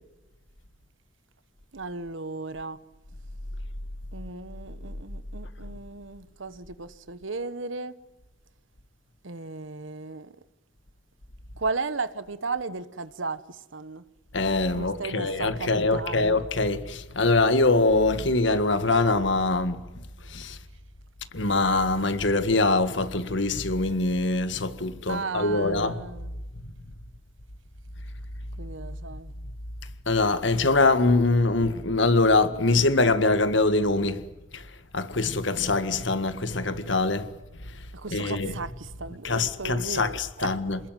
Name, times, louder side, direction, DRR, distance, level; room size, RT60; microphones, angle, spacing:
voice 1, 1.7-2.8 4.1-7.9 9.2-10.3 11.6-14.0 14.8-16.4 25.1-26.3 28.6-29.3 37.9-40.5, right 3 dB, 80° right, 1.2 m, -35 dB
voice 2, 14.3-19.8 20.3-20.6 21.3-25.9 30.1-34.2 34.5-34.7 34.9-37.3 38.1-38.6 39.2-40.8, left 2 dB, 70° left, 1.7 m, -23 dB
28.0 x 20.5 x 9.3 m
head